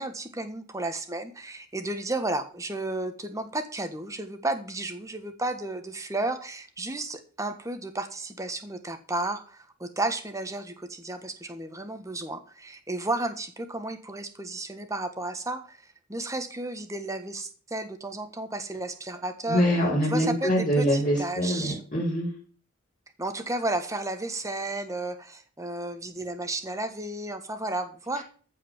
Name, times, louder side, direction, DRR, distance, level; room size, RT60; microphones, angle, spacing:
voice 1, 0.0-15.8 16.1-19.6 20.1-21.8 23.2-28.2, right 2 dB, 15° right, 8 dB, 1.4 m, -33 dB
voice 2, 19.5-22.3, equal, 35° left, -7 dB, 5.5 m, -24 dB
14.5 x 5.0 x 7.3 m, 0.42 s
head